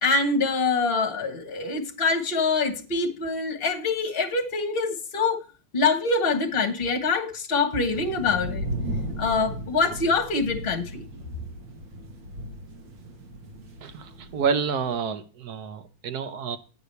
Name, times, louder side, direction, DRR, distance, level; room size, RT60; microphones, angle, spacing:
voice 1, 0.0-5.4 5.7-8.7 9.2-11.0, left 4 dB, 35° left, 1.4 m, -25 dB
sound 1, 7.9-15.0, right 1 dB, 90° right, 2.1 m, -36 dB
voice 2, 14.3-16.6, right 6 dB, 65° right, 1.3 m, -28 dB
9.3 x 4.9 x 6.8 m
omnidirectional pair, 2.0 m